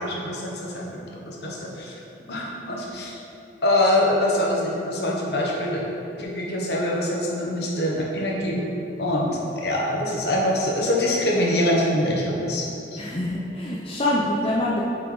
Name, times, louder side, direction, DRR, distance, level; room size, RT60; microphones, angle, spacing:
voice 1, 0.0-2.0 2.3-3.2 3.6-5.8 6.2-8.7 9.0-12.7 12.9-13.0, left 1 dB, 60° left, -3 dB, 1.2 m, -24 dB
voice 2, 13.0-14.8, left 1 dB, 30° left, -5 dB, 0.6 m, -25 dB
7.4 x 4.8 x 3.9 m, 2.8 s
head